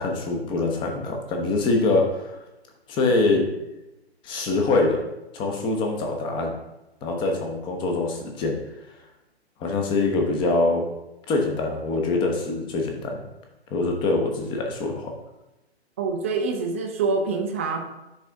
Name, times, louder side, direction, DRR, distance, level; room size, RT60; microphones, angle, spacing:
voice 1, 0.0-2.4 2.9-3.5 4.2-5.0 5.3-6.5 7.0-8.6 9.6-10.8 11.3-13.2 13.7-15.1, left 3 dB, 15° left, 2 dB, 0.9 m, -24 dB
voice 2, 16.0-17.8, right 4 dB, 15° right, 3 dB, 0.4 m, -25 dB
10.0 x 4.1 x 3.5 m, 0.97 s
figure-of-eight pair, 125°, 33 cm